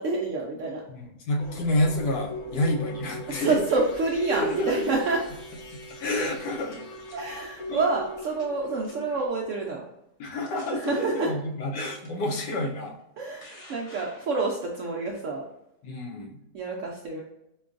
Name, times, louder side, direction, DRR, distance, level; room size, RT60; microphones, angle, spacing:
voice 1, 0.0-0.8 3.3-5.2 7.1-9.8 10.7-11.3 13.2-15.4 16.5-17.2, right 3 dB, 75° right, -2 dB, 0.7 m, -28 dB
voice 2, 0.9-3.5 4.3-4.7 6.0-6.8 7.7-7.8 10.2-12.9 15.8-16.4, left 1 dB, 85° left, 1 dB, 1.3 m, -29 dB
sound 1, 1.4-9.3, left 1 dB, 70° left, 1.0 m, -41 dB
sound 2, 6.7-7.2 8.2-8.6 8.8-9.2 9.8-9.9 10.4-10.9 11.9-12.1 13.0-14.8, left 2 dB, 40° left, 1.0 m, -50 dB
5.2 x 2.3 x 2.4 m, 0.84 s
omnidirectional pair, 1.8 m